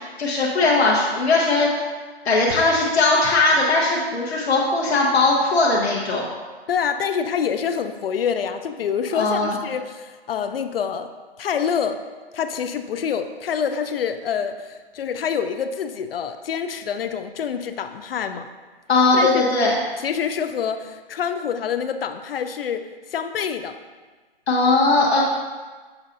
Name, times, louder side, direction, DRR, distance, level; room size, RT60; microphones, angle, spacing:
voice 1, 0.2-1.7 2.2-6.3 9.1-9.5 18.9-19.8 24.5-25.2, left 3 dB, 90° left, -3 dB, 1.1 m, -19 dB
voice 2, 6.7-11.1 11.4-12.0 12.3-18.5 19.1-19.4 20.0-22.8 23.1-23.8, left 7 dB, 65° left, 9 dB, 0.5 m, -26 dB
7.2 x 6.3 x 2.5 m, 1.4 s
hypercardioid pair, 160°, 31 cm